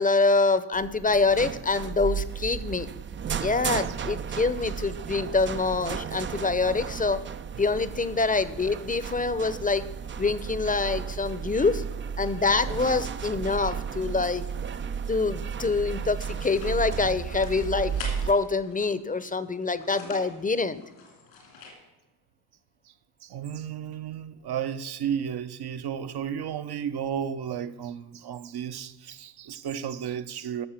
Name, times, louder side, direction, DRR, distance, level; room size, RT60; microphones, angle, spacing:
voice 1, 0.0-2.9 3.4-7.2 7.5-9.8 10.2-11.8 12.2-14.5 15.1-17.9 18.2-20.8, left 3 dB, 20° left, 0.7 m, -25 dB
sound 1, 0.7-18.3, right 7 dB, 30° right, 0.4 m, -34 dB
sound 2, 15.8-21.7, left 3 dB, 85° left, 2.9 m, -46 dB
voice 2, 23.2-30.7, right 8 dB, 60° right, 0.8 m, -33 dB
12.5 x 6.5 x 5.8 m
supercardioid pair, 45°, 45 cm